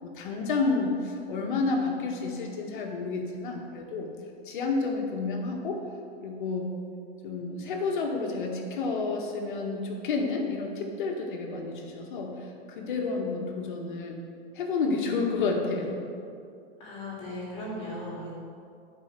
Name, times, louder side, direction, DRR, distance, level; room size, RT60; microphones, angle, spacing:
voice 1, 0.0-4.1 4.5-5.8 6.2-6.7 7.2-14.2 14.5-16.0, left 3 dB, 50° left, 1 dB, 1.8 m, -30 dB
voice 2, 16.8-18.3, left 1 dB, 20° left, -6 dB, 3.0 m, -37 dB
12.0 x 5.4 x 6.9 m, 2.5 s
supercardioid pair, 180°, 31 cm